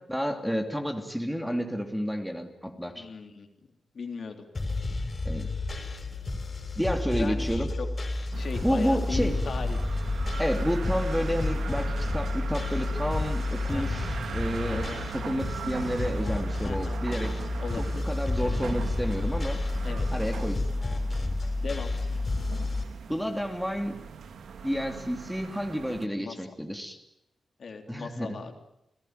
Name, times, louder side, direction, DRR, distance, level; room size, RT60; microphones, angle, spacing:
voice 1, 0.1-3.1 5.2-5.5 6.8-7.7 8.6-9.4 10.4-14.9 15.1-17.3 17.8-19.6 20.1-20.6 23.1-23.9 24.6-27.0 27.9-28.4, equal, ahead, 4 dB, 2.9 m, -30 dB
voice 2, 2.9-3.5 3.9-4.5 7.1-7.9 8.3-9.8 13.7-14.0 14.7-15.0 16.6-17.0 17.6-18.0 18.4-18.6 19.8-20.1 21.6-22.0 26.2-26.3 27.6-28.5, left 5 dB, 60° left, 4 dB, 3.6 m, -38 dB
sound 1, 4.5-22.8, left 2 dB, 30° left, 5.3 m, -30 dB
sound 2, 8.3-26.1, right 6 dB, 85° right, 1.6 m, -40 dB
29.5 x 18.0 x 9.3 m, 0.84 s
wide cardioid pair, 105°, 0 cm